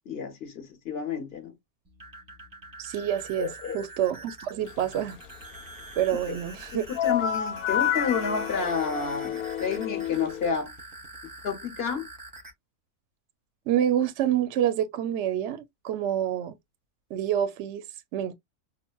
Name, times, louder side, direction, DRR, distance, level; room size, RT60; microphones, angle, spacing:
voice 1, 0.1-1.5 3.4-3.8 6.3-6.4 6.7-10.7 11.4-12.1, left 5 dB, 45° left, 1.0 m, -30 dB
sound 1, 1.8-12.5, right 1 dB, 20° right, 0.7 m, -45 dB
voice 2, 2.8-5.2 6.0-6.8 13.7-16.5 17.1-17.8 18.1-18.3, right 10 dB, 65° right, 0.8 m, -27 dB
sound 2, 7.0-10.6, left 10 dB, 80° left, 1.1 m, -29 dB
5.7 x 2.1 x 2.3 m
omnidirectional pair, 1.6 m